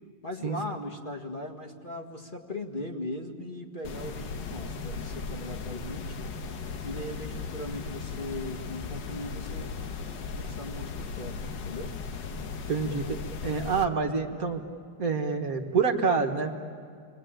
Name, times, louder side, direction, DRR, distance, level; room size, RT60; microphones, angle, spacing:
voice 1, 0.2-6.3 6.8-9.7 10.3-12.0, left 1 dB, 30° left, 2 dB, 2.0 m, -39 dB
sound 1, 3.8-13.8, left 4 dB, 85° left, 1.8 m, -37 dB
voice 2, 12.7-13.2 13.4-14.6 15.0-16.5, right 5 dB, 55° right, 4 dB, 1.8 m, -27 dB
29.0 x 22.0 x 9.1 m, 2.1 s
omnidirectional pair, 1.9 m